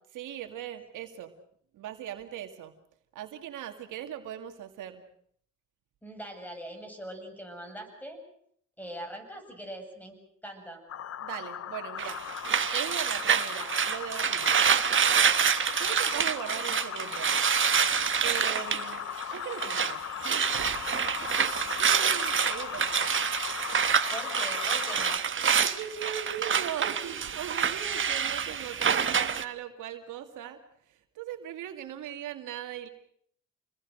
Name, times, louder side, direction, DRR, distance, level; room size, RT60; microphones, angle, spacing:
voice 1, 0.1-1.3 1.7-2.7 3.1-5.0 11.2-12.2 12.7-14.6 15.7-17.4 18.2-20.8 21.1-21.3 21.8-23.1 25.5-30.6 30.9-32.9, right 10 dB, 85° right, 6 dB, 2.4 m, -39 dB
voice 2, 6.0-8.2 8.8-10.2 10.4-10.8 24.1-25.2, equal, 5° left, 5 dB, 7.7 m, -42 dB
sound 1, 10.9-25.2, left 10 dB, 55° left, 0.9 m, -38 dB
sound 2, 12.0-19.9 20.2-29.4, right 7 dB, 40° right, 1.4 m, -27 dB
28.5 x 20.5 x 6.6 m, 0.64 s
cardioid pair, 90°, 30 cm